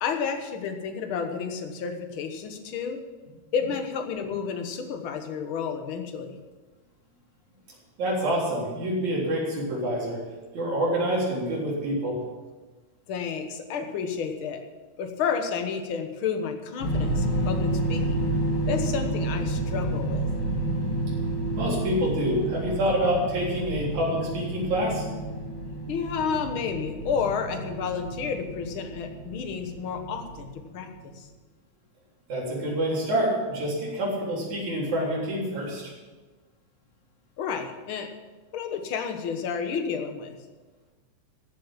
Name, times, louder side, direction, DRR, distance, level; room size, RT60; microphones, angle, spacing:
voice 1, 0.0-3.0 3.5-6.4 13.1-14.6 15.0-18.2 18.7-20.3 25.9-31.3 37.4-38.1 38.5-40.4, left 6 dB, 55° left, 5 dB, 1.7 m, -31 dB
voice 2, 8.0-10.2 10.5-12.2 21.5-25.1 32.3-35.9, equal, 70° right, -4 dB, 4.9 m, -27 dB
sound 1, 16.8-30.8, right 1 dB, 75° left, 4.4 m, -30 dB
14.5 x 7.3 x 7.5 m, 1.3 s
omnidirectional pair, 3.4 m